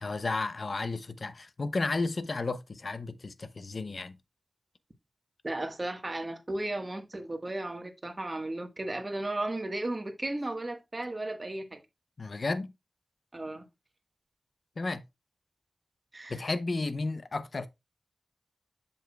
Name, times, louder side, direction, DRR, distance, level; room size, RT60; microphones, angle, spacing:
voice 1, 0.0-4.1 12.2-12.7 14.8-15.0 16.3-17.7, left 3 dB, 55° left, 0.6 m, -33 dB
voice 2, 5.4-11.8 13.3-13.6 16.1-16.4, right 2 dB, 30° right, 1.3 m, -35 dB
7.7 x 7.0 x 2.3 m
wide cardioid pair, 80°, 0 cm